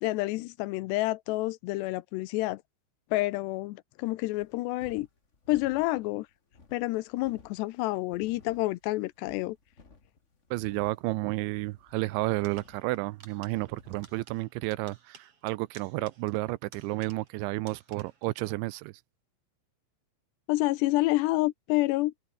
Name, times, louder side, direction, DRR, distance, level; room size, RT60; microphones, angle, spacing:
voice 1, 0.0-2.6 3.1-5.1 5.5-6.3 6.7-9.6 20.5-22.1, left 19 dB, 80° left, 2.6 m, -28 dB
sound 1, 4.3-14.2, left 4 dB, 35° left, 1.1 m, -57 dB
voice 2, 10.5-18.9, right 21 dB, 85° right, 2.9 m, -31 dB
sound 2, 12.4-17.4 17.7-18.3, right 6 dB, 35° right, 3.2 m, -56 dB
omnidirectional pair, 5.3 m